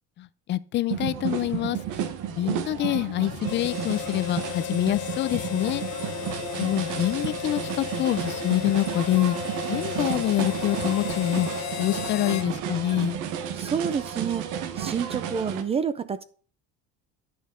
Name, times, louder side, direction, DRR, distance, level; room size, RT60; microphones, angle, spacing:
voice 1, 0.2-1.8 2.3-5.8 6.6-9.4 9.7-11.5 11.8-13.2, left 14 dB, 40° left, 0.5 m, -26 dB
sound 1, 0.9-15.6, right 9 dB, 80° right, 1.4 m, -32 dB
Harmonica, 3.4-12.5, left 11 dB, 65° left, 1.2 m, -35 dB
voice 2, 13.6-14.5 14.8-16.2, right 6 dB, 20° right, 0.4 m, -28 dB
10.0 x 6.3 x 5.0 m
cardioid pair, 175°, 30 cm